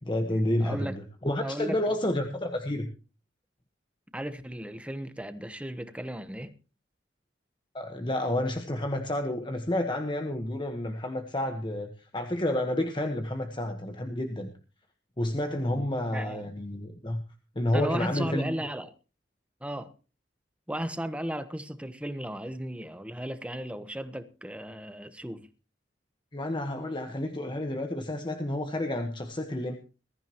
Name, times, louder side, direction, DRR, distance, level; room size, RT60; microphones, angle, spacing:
voice 1, 0.0-0.9 1.2-2.9 7.7-14.5 15.2-17.2 17.5-18.5 26.3-29.8, left 1 dB, 25° left, 1.3 m, -30 dB
voice 2, 0.6-1.0 1.4-1.8 4.1-6.5 16.1-16.5 17.7-18.9 19.6-19.9 20.7-25.5, equal, 5° right, 1.1 m, -35 dB
21.5 x 14.0 x 3.0 m
head